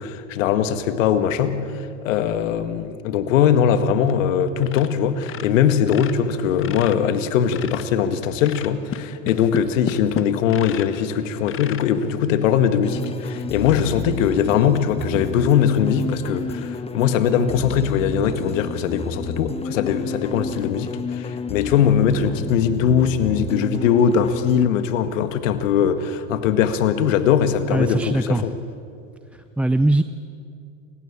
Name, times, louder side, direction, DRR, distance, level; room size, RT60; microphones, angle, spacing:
voice 1, 0.0-28.5, left 8 dB, 70° left, 10 dB, 1.8 m, -21 dB
sound 1, 4.0-4.4 4.6-4.9 5.2-8.0 8.4-11.0 11.4-11.9 12.5-12.6 13.0-13.1 13.6-13.8, left 9 dB, 30° left, 1.4 m, -33 dB
sound 2, 12.8-24.7, left 4 dB, 15° left, 1.2 m, -31 dB
voice 2, 27.7-28.5 29.3-30.0, right 2 dB, 5° right, 11 dB, 0.5 m, -21 dB
28.5 x 16.0 x 8.8 m, 2.5 s
hypercardioid pair, 95°, 39 cm